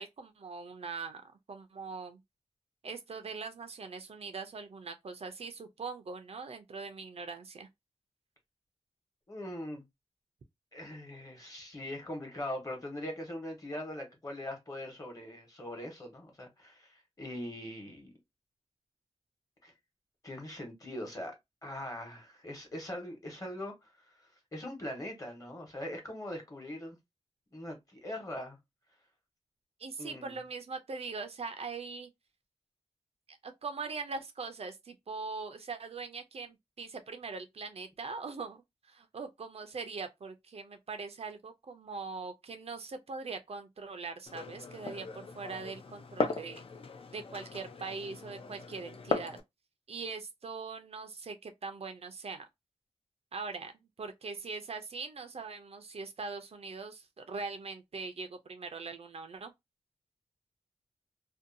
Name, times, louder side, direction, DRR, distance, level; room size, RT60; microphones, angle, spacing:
voice 1, 0.0-2.2 2.8-7.7 29.8-32.1 33.3-46.6 47.1-49.4 49.9-52.4 53.3-53.7 54.0-59.5, right 4 dB, 60° right, 0.4 m, -41 dB
voice 2, 9.3-9.8 10.7-18.1 19.6-19.7 20.2-21.3 21.6-24.1 24.5-27.0 27.5-28.6 30.0-30.4, left 1 dB, 30° left, 1.1 m, -41 dB
Glass, 44.3-49.4, left 3 dB, 55° left, 0.4 m, -38 dB
2.6 x 2.2 x 2.5 m
wide cardioid pair, 110°, 12 cm